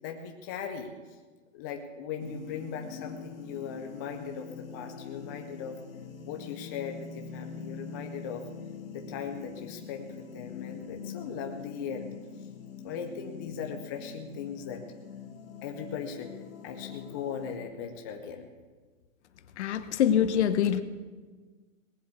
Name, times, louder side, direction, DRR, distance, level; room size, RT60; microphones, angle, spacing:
voice 1, 0.0-1.2 1.5-5.8 6.3-8.5 8.9-12.1 12.8-14.8 15.6-16.4 16.6-18.5, left 7 dB, 15° left, 3 dB, 0.4 m, -39 dB
sound 1, 2.2-17.6, left 6 dB, 85° left, 1.6 m, -44 dB
voice 2, 19.6-20.8, left 9 dB, 55° left, 10 dB, 1.1 m, -24 dB
18.5 x 7.8 x 8.3 m, 1.4 s
hypercardioid pair, 150°, 40 cm